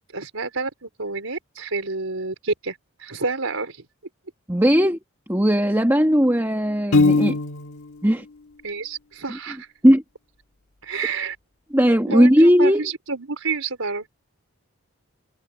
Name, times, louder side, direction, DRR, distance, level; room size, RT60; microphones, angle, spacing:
voice 1, 0.1-3.8 8.6-9.7 10.8-11.4 12.1-14.1, right 4 dB, 80° right, 4.2 m, -29 dB
voice 2, 4.5-5.0 5.3-7.4 8.0-8.2 9.3-9.4 9.8-10.0 11.7-12.8, equal, 10° right, 1.4 m, -17 dB
Piano, 6.9-7.9, left 3 dB, 80° left, 1.4 m, -19 dB
head